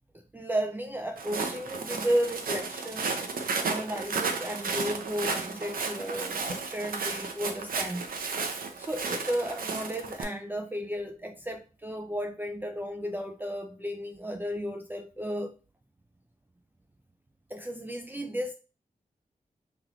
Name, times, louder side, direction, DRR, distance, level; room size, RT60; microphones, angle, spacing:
voice 1, 0.3-3.3 3.6-8.1 8.8-15.5 17.5-18.5, equal, 15° right, 0.3 m, -33 dB
Walk footsteps, 1.2-10.2, right 4 dB, 80° right, 0.5 m, -33 dB
3.3 x 2.9 x 2.4 m
wide cardioid pair, 70°, 15 cm